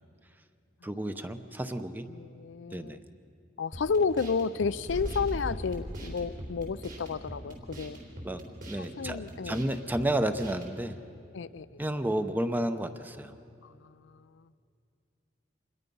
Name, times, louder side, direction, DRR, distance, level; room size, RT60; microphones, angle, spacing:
voice 1, 0.8-2.1 2.7-3.0 8.2-11.0 11.8-13.3, right 1 dB, 10° right, 9 dB, 0.8 m, -31 dB
voice 2, 2.1-3.0 3.6-8.0 8.8-9.7 11.3-11.8 13.6-14.4, left 5 dB, 80° left, 14 dB, 0.5 m, -32 dB
sound 1, 3.7-10.8, right 1 dB, 50° right, 3.7 m, -44 dB
sound 2, 4.9-7.8, equal, 85° right, 3.8 m, -39 dB
26.5 x 21.0 x 5.5 m, 2.5 s
head